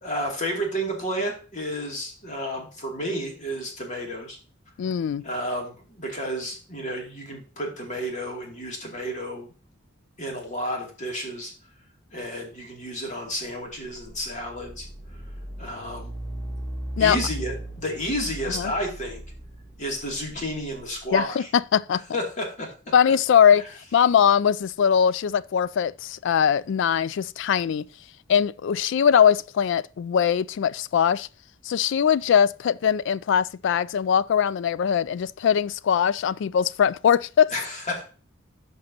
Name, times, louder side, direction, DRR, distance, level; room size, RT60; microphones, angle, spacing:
voice 1, 0.0-4.4 5.2-9.5 10.2-11.5 12.1-14.9 15.6-16.1 17.0-19.2 19.8-21.5 22.1-22.7 37.5-38.0, equal, 40° left, 2.6 m, -31 dB
voice 2, 4.8-5.2 17.0-17.2 18.5-18.7 21.1-22.0 22.9-23.6 23.9-27.9 28.3-31.3 31.6-37.5, left 8 dB, 65° left, 0.3 m, -21 dB
sound 1, 13.4-21.2, right 1 dB, 15° left, 3.3 m, -38 dB
14.0 x 5.3 x 2.9 m
head